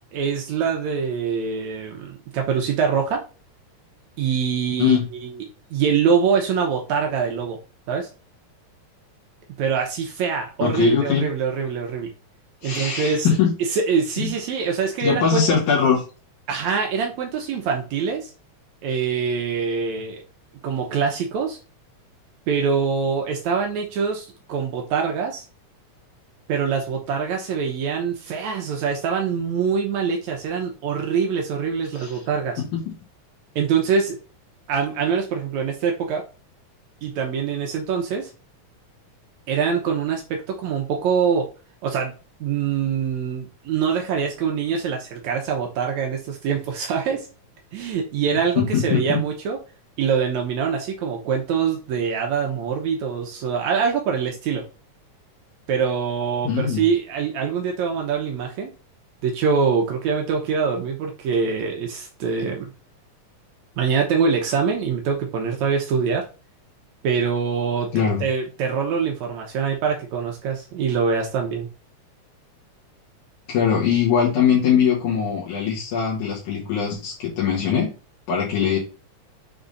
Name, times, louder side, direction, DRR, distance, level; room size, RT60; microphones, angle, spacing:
voice 1, 0.1-3.2 4.2-5.0 5.2-5.3 5.7-7.6 7.9-8.1 9.6-12.1 12.6-13.3 13.7-15.4 16.5-18.3 18.8-20.2 20.6-21.6 22.5-25.5 26.5-32.6 33.6-34.2 34.7-36.2 37.0-38.3 39.5-41.5 41.8-42.1 42.4-47.3 47.7-49.6 50.0-54.6 55.7-58.7 59.2-62.7 63.8-66.3 67.0-67.9 68.2-71.7, right 6 dB, 75° right, 2 dB, 2.2 m, -24 dB
voice 2, 10.6-11.3 12.6-13.5 14.2-14.3 15.0-16.0 31.9-32.2 32.6-32.9 48.6-49.2 56.4-56.9 67.9-68.2 73.5-77.9 78.3-78.8, left 7 dB, 85° left, -5 dB, 3.0 m, -21 dB
6.9 x 3.5 x 3.9 m, 0.34 s
omnidirectional pair, 3.4 m